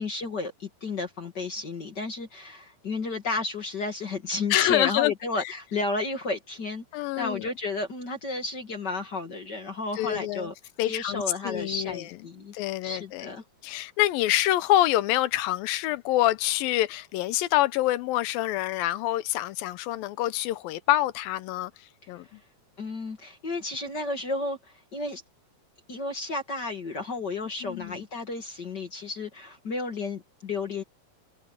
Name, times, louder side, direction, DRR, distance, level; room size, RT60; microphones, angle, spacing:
voice 1, 0.0-10.5 10.9-12.5 12.8-13.4 22.8-25.2 25.9-30.8, left 3 dB, 35° left, 1.8 m, -32 dB
voice 2, 4.5-5.1 6.9-7.5 10.0-10.5 10.8-12.1 12.5-13.4 13.6-21.7 22.1-22.3 27.6-28.0, left 15 dB, 80° left, 2.3 m, -26 dB
open air
omnidirectional pair, 4.5 m